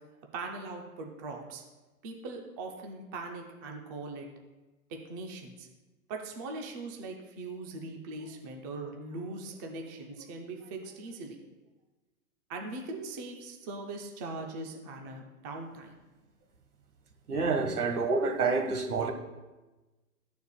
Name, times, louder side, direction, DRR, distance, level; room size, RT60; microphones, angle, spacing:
voice 1, 0.3-1.6 2.0-4.3 4.9-5.7 6.1-11.4 12.5-16.0, right 3 dB, 15° right, 2 dB, 0.4 m, -40 dB
voice 2, 17.3-19.1, right 4 dB, 85° right, 6 dB, 1.5 m, -28 dB
13.5 x 6.8 x 2.3 m, 1.1 s
hypercardioid pair, 135°, 44 cm